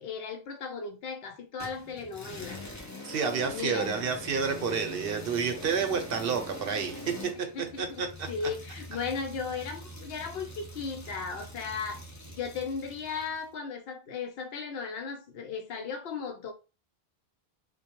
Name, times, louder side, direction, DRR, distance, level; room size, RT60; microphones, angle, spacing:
voice 1, 0.0-2.6 3.5-4.1 7.4-16.5, left 5 dB, 70° left, 0.8 m, -36 dB
sound 1, 1.6-13.4, left 1 dB, 30° left, 0.4 m, -43 dB
voice 2, 3.0-7.0 7.6-8.3, right 6 dB, 70° right, 0.8 m, -30 dB
2.2 x 2.2 x 2.9 m
omnidirectional pair, 1.0 m